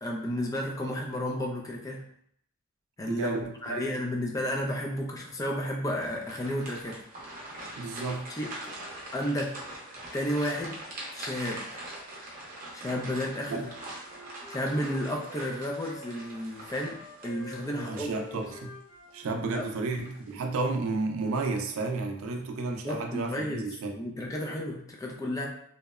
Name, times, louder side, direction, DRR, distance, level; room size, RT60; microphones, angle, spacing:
voice 1, 0.0-2.0 3.0-7.0 8.3-8.8 9.1-9.6 10.1-10.8 11.1-11.7 12.7-13.7 14.5-18.4 19.5-19.7 22.8-25.5, equal, 15° left, 0 dB, 0.3 m, -32 dB
voice 2, 3.1-3.8 7.8-8.2 13.5-13.6 17.8-18.7 19.1-24.0, right 3 dB, 85° right, 3 dB, 0.4 m, -32 dB
sound 1, 6.0-18.6 19.1-19.2 19.8-20.3, right 1 dB, 40° right, 0.6 m, -43 dB
Wind instrument woodwind instrument, 13.6-16.3 16.8-20.1, left 1 dB, 80° left, 1.0 m, -48 dB
2.8 x 2.0 x 2.3 m, 0.67 s
head